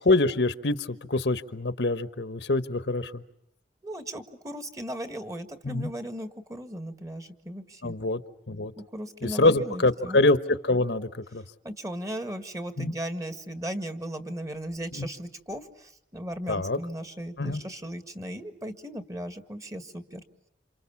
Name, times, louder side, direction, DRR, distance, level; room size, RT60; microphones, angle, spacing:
voice 1, 0.0-3.2 5.6-5.9 7.8-8.2 8.5-8.7 9.2-11.4 12.8-12.9 14.9-15.1 16.5-16.8 17.4-17.6, left 2 dB, 70° left, 12 dB, 1.2 m, -25 dB
voice 2, 3.8-8.0 8.8-10.2 11.6-20.2, equal, 20° right, 9 dB, 1.7 m, -37 dB
29.0 x 27.5 x 7.2 m, 0.74 s
head